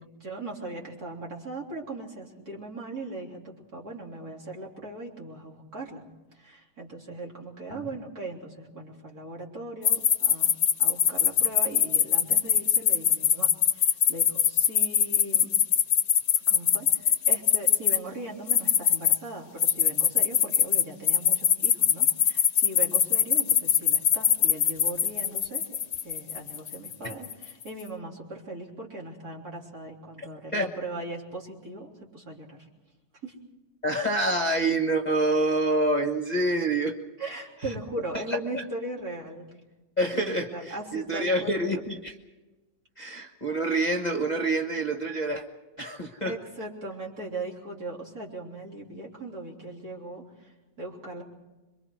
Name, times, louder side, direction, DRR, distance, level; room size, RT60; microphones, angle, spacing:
voice 1, 0.0-6.0 6.3-15.5 16.5-25.6 26.0-32.7 33.2-33.3 37.2-39.5 40.1-41.8 46.2-51.2, right 2 dB, 50° right, -2 dB, 4.2 m, -39 dB
sound 1, 9.8-18.0 18.5-19.2 19.6-27.4, left 8 dB, 50° left, 1.0 m, -22 dB
voice 2, 33.8-37.0 37.6-37.7 38.3-38.6 40.0-42.2 43.0-45.4 45.8-46.4, right 1 dB, 25° left, 4 dB, 1.3 m, -27 dB
27.0 x 23.5 x 4.8 m, 1.1 s
omnidirectional pair, 2.0 m